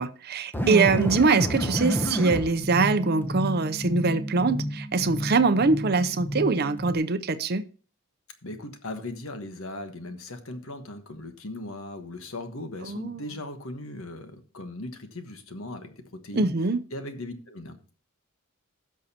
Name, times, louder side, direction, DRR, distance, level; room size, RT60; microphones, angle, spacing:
voice 1, 0.0-7.6 12.8-13.2 16.3-16.8, right 4 dB, 45° right, 0.6 m, -23 dB
sound 1, 0.5-6.9, equal, 10° left, 0.8 m, -30 dB
voice 2, 8.4-16.5 16.9-17.9, left 1 dB, 65° left, 1.3 m, -38 dB
16.5 x 6.4 x 2.8 m
head